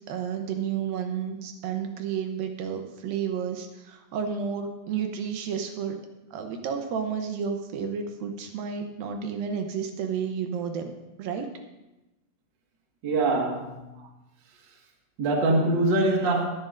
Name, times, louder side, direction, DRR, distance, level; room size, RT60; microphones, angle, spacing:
voice 1, 0.1-6.0 6.3-10.9 11.2-11.6, right 7 dB, 80° right, 5 dB, 2.6 m, -31 dB
voice 2, 13.0-13.8 15.2-16.4, right 2 dB, 40° right, 0 dB, 1.7 m, -23 dB
20.0 x 11.0 x 2.6 m, 0.99 s
omnidirectional pair, 4.2 m